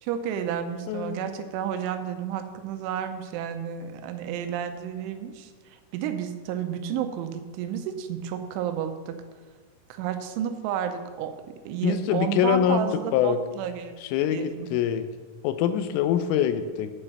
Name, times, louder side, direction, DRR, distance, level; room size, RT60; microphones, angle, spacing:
voice 1, 0.0-9.2 9.9-13.9 14.3-14.7, right 9 dB, 80° right, 8 dB, 3.0 m, -31 dB
voice 2, 0.9-1.3 11.8-12.8 13.1-13.4 14.1-15.1 15.4-16.9, left 9 dB, 90° left, 10 dB, 3.3 m, -24 dB
8.9 x 7.7 x 6.0 m, 1.5 s
omnidirectional pair, 5.6 m